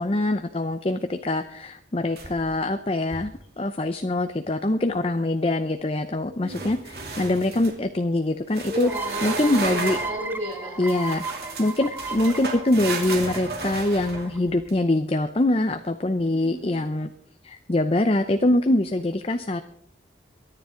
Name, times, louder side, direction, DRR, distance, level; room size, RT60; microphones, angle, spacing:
voice 1, 0.0-3.3 3.6-6.8 7.2-8.9 9.2-10.0 10.8-11.2 11.6-17.1 17.4-19.6, left 1 dB, 30° left, 8 dB, 0.6 m, -24 dB
sound 1, 2.2-2.6 3.0-3.4 6.5-7.8 8.5-10.2 10.9-14.7, right 3 dB, 55° right, 2.8 m, -33 dB
voice 2, 6.3-6.7 8.7-10.8 16.3-16.8, equal, 35° right, -9 dB, 7.5 m, -34 dB
sound 2, 8.9-14.4, right 3 dB, 10° right, 0.8 m, -35 dB
23.5 x 9.8 x 3.8 m, 0.65 s
head